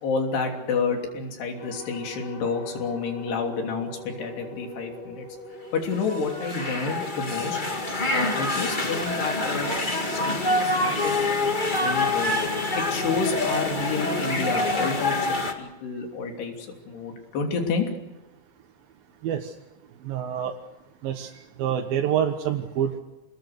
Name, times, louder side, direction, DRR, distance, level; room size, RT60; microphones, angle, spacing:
voice 1, 0.0-5.3 5.7-7.6 8.1-9.8 10.1-12.4 12.7-15.3 15.6-17.9, left 4 dB, 75° left, 3 dB, 5.2 m, -29 dB
sound 1, 1.5-10.9, left 1 dB, 50° left, 6.7 m, -43 dB
sound 2, 5.9-15.5, left 2 dB, 30° left, 0.8 m, -26 dB
voice 2, 19.2-19.5 20.0-20.5 21.0-21.3 21.6-23.0, right 9 dB, 65° right, 3 dB, 2.8 m, -26 dB
27.5 x 20.5 x 6.7 m, 1.0 s
omnidirectional pair, 4.8 m